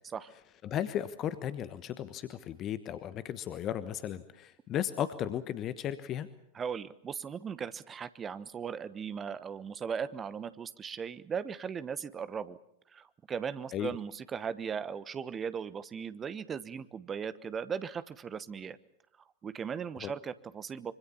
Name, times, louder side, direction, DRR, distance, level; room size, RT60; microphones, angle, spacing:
voice 1, 0.6-6.3 13.7-14.0 20.0-20.1, left 10 dB, 30° left, 13 dB, 1.2 m, -35 dB
voice 2, 6.5-12.6 12.9-18.8 19.4-20.9, right 7 dB, 20° right, 15 dB, 1.1 m, -38 dB
25.5 x 25.5 x 7.2 m, 0.74 s
figure-of-eight pair, 90°, 0 cm